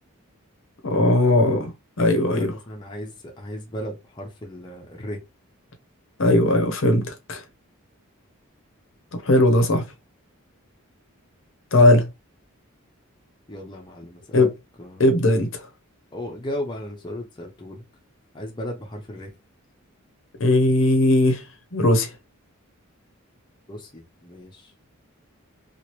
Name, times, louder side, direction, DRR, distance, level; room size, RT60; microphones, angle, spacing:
voice 1, 0.8-1.7 2.0-2.5 6.2-7.4 9.2-9.8 11.7-12.1 14.3-14.5 15.0-15.7 20.4-21.4 21.7-22.1, left 1 dB, 60° left, 0.7 m, -18 dB
voice 2, 2.2-5.2 13.5-14.5 14.8-15.1 16.1-17.8 18.3-19.3 23.7-24.7, equal, 20° left, 0.6 m, -35 dB
3.0 x 2.5 x 2.9 m
head